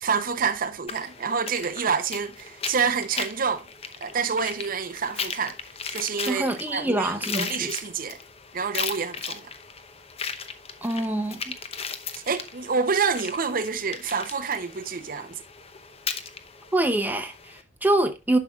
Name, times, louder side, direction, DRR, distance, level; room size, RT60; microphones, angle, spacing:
voice 1, 0.0-3.7 4.0-5.6 5.9-6.5 6.7-8.2 8.5-9.5 12.1-15.4, right 5 dB, 50° right, 0.7 m, -27 dB
sound 1, 0.9-17.6, left 6 dB, 35° left, 0.8 m, -37 dB
voice 2, 6.3-7.7 10.8-11.6 16.7-18.4, right 1 dB, 10° right, 0.8 m, -25 dB
11.5 x 5.8 x 2.3 m
head